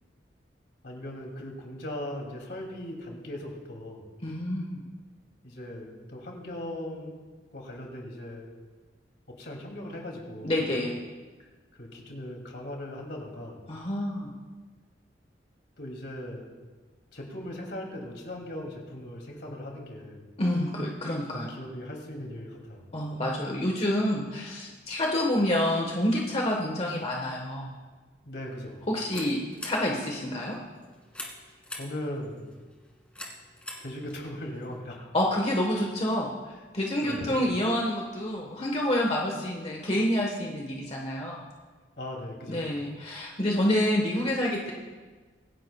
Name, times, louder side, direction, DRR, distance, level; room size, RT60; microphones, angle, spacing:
voice 1, 0.8-4.0 5.4-7.2 7.5-8.5 9.3-10.6 11.8-13.6 15.8-16.5 17.1-20.2 21.3-22.9 28.2-28.8 31.7-32.5 33.8-35.0 37.0-37.4 42.0-42.7, left 1 dB, 65° left, 0 dB, 2.7 m, -39 dB
voice 2, 4.2-4.8 10.4-10.9 13.7-14.3 20.4-21.5 22.9-27.7 28.9-30.6 35.1-36.3 36.7-41.5 42.5-44.7, left 1 dB, 35° left, -1 dB, 1.3 m, -28 dB
sound 1, 28.6-34.8, left 1 dB, 5° left, 2.0 m, -46 dB
25.0 x 10.5 x 2.3 m, 1.4 s
head